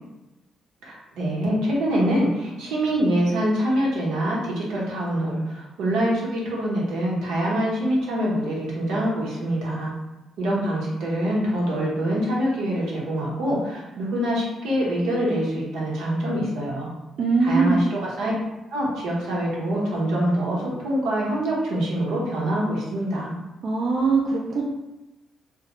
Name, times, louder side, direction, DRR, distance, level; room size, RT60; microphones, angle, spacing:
voice 1, 0.8-9.9 10.4-16.9 17.4-18.3 18.7-23.3, equal, 90° right, -5 dB, 0.8 m, -25 dB
voice 2, 17.2-17.8 23.6-24.6, right 4 dB, 60° right, -2 dB, 0.3 m, -21 dB
2.4 x 2.0 x 2.9 m, 0.99 s
cardioid pair, 90°, 0 cm